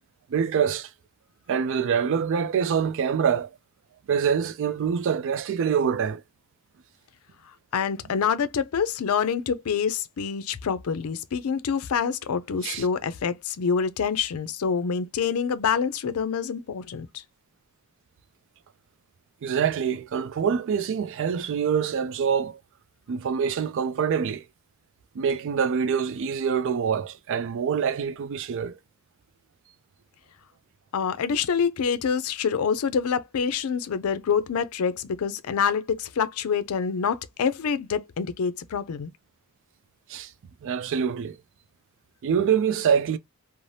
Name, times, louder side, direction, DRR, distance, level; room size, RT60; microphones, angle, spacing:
voice 1, 0.3-0.9 1.5-3.5 4.1-6.2 12.6-12.9 19.4-22.6 23.1-24.4 25.2-28.8 40.1-40.3 40.6-41.4 42.2-43.2, right 7 dB, 60° right, 0.3 m, -25 dB
voice 2, 7.7-17.2 30.9-39.1, left 6 dB, 75° left, 0.4 m, -26 dB
2.7 x 2.0 x 3.1 m
head